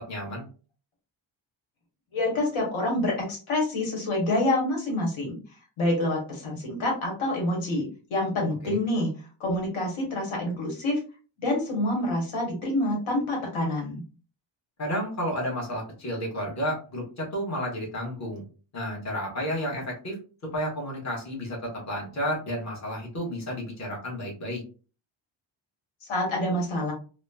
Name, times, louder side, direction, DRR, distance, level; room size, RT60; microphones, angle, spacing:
voice 1, 0.1-0.4 8.6-8.8 14.8-18.4 18.7-20.2 20.5-24.6, equal, 35° left, -1 dB, 1.1 m, -31 dB
voice 2, 2.1-5.4 5.8-9.1 9.4-11.0 11.4-14.0 26.1-26.9, left 1 dB, 85° left, 0 dB, 1.2 m, -27 dB
2.9 x 2.0 x 2.2 m, 0.36 s
cardioid pair, 125°, 47 cm